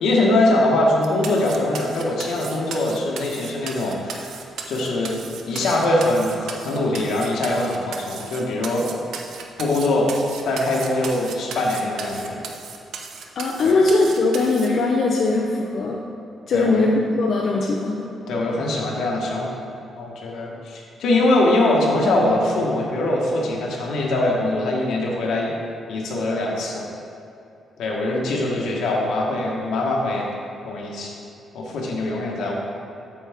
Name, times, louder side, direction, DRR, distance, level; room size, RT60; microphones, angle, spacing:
voice 1, 0.0-4.3 4.7-5.1 5.5-8.9 9.6-10.1 10.4-12.4 13.6-13.8 16.5-16.9 18.3-19.6 20.0-25.5 25.9-26.9 27.8-30.3 30.6-31.1 31.5-32.5, left 2 dB, 80° left, -2 dB, 1.5 m, -22 dB
sound 1, 1.0-14.7, right 6 dB, 85° right, 0.7 m, -36 dB
voice 2, 13.4-16.0 16.5-18.1, left 3 dB, 55° left, -1 dB, 0.6 m, -20 dB
8.4 x 7.1 x 3.6 m, 2.7 s
cardioid pair, 160°, 0 cm